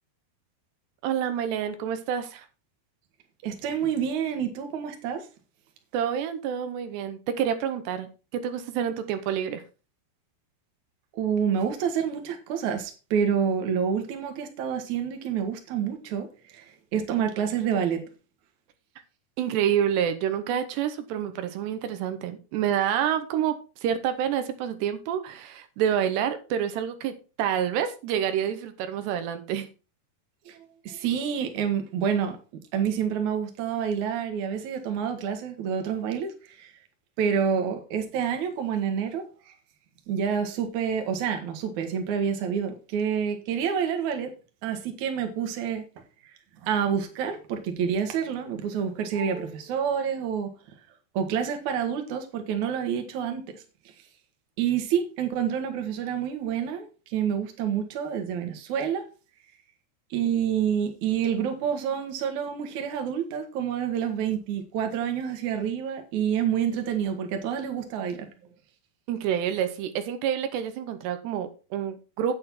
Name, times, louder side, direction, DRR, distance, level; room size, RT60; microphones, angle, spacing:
voice 1, 1.0-2.5 5.9-9.6 19.4-23.6 23.8-29.7 69.1-72.3, right 9 dB, 85° right, 3.1 m, -28 dB
voice 2, 3.4-5.3 11.1-18.0 30.5-32.4 32.7-36.7 37.2-39.5 40.1-44.3 44.6-45.8 46.2-46.3 46.6-50.8 51.1-53.6 54.6-59.0 60.1-68.3, right 8 dB, 55° right, 2.5 m, -28 dB
8.7 x 8.3 x 4.4 m
omnidirectional pair, 4.8 m